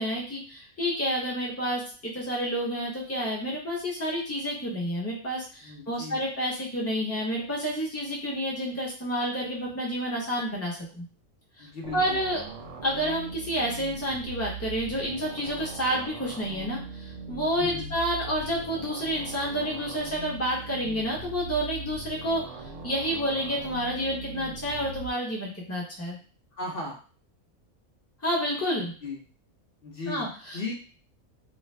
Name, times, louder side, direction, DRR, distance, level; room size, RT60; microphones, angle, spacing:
voice 1, 0.0-11.0 11.6-12.4 12.8-22.4 22.8-26.2 28.2-28.9 30.1-30.6, equal, 15° left, -4 dB, 0.8 m, -29 dB
voice 2, 5.6-6.2 11.6-12.2 17.6-17.9 26.5-27.0 29.0-29.2 29.8-30.3 30.5-30.7, left 3 dB, 55° left, -2 dB, 0.7 m, -36 dB
sound 1, 11.8-25.1, right 3 dB, 60° right, 0.9 m, -40 dB
2.5 x 2.4 x 3.2 m, 0.38 s
omnidirectional pair, 1.5 m